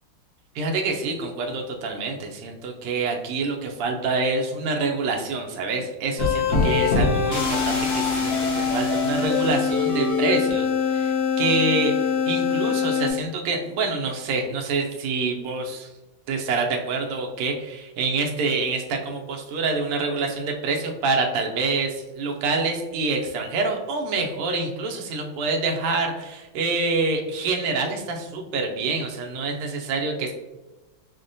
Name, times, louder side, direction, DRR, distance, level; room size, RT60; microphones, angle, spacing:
voice 1, 0.5-15.9 16.3-30.3, right 3 dB, 85° right, 2 dB, 1.5 m, -26 dB
sound 1, 6.2-13.1, left 5 dB, 70° left, 0.7 m, -23 dB
5.9 x 2.1 x 2.5 m, 1.1 s
omnidirectional pair, 2.4 m